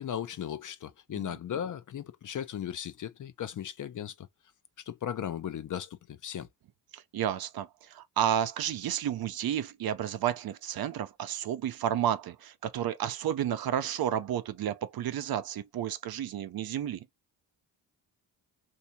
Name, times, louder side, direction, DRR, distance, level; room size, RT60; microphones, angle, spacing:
voice 1, 0.0-4.3 4.9-6.5, left 9 dB, 45° left, 0.7 m, -37 dB
voice 2, 6.9-17.1, right 10 dB, 60° right, 0.7 m, -31 dB
3.4 x 2.7 x 2.7 m
supercardioid pair, 60°, 42 cm